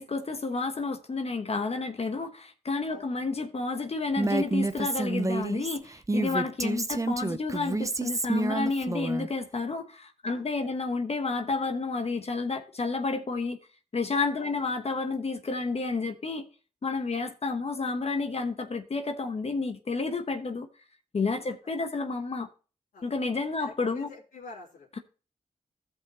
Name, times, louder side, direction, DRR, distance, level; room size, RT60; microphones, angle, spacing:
voice 1, 0.0-13.6 13.9-16.4 16.8-20.7 21.1-22.5 23.0-24.1, left 3 dB, 45° left, 1.1 m, -30 dB
Female speech woman speaking, 4.2-9.3, right 2 dB, 20° right, 0.8 m, -29 dB
voice 2, 10.2-10.7 14.4-14.6 17.1-17.2 22.9-23.0 23.6-24.9, left 3 dB, 80° left, 3.2 m, -47 dB
14.5 x 5.6 x 3.0 m
cardioid pair, 50°, 14 cm